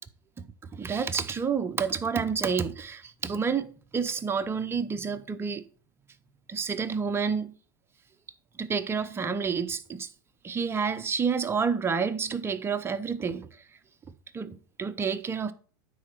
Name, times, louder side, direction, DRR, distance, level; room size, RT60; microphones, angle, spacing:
voice 1, 0.7-5.6 6.5-7.5 8.6-10.1 10.4-13.5 14.3-15.5, right 6 dB, 20° right, 0.8 m, -29 dB
9.7 x 4.2 x 6.0 m
hypercardioid pair, 95°, 11 cm